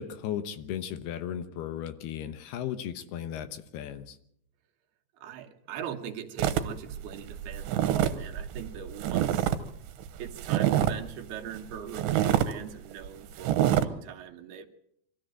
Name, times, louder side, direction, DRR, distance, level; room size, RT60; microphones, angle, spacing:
voice 1, 0.0-4.2, left 10 dB, 75° left, 11 dB, 2.9 m, -36 dB
voice 2, 5.2-9.5 10.2-14.7, right 8 dB, 70° right, 3 dB, 3.2 m, -40 dB
sound 1, 6.4-9.6 9.9-11.1 11.5-11.6 11.9-12.5 12.9-13.1 13.4-13.8, right 11 dB, 90° right, 3.3 m, -26 dB
25.0 x 13.5 x 7.8 m, 0.72 s
omnidirectional pair, 4.9 m